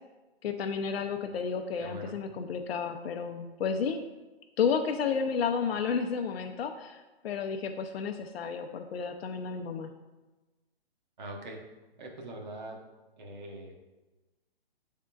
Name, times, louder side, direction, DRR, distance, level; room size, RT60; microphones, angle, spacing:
voice 1, 0.4-4.0 4.6-9.9, left 6 dB, 75° left, 5 dB, 0.5 m, -32 dB
voice 2, 1.8-2.2 11.2-11.6 12.0-12.8 13.2-13.8, right 1 dB, 45° right, 1 dB, 0.9 m, -42 dB
6.2 x 3.6 x 2.2 m, 1.1 s
hypercardioid pair, 160°, 31 cm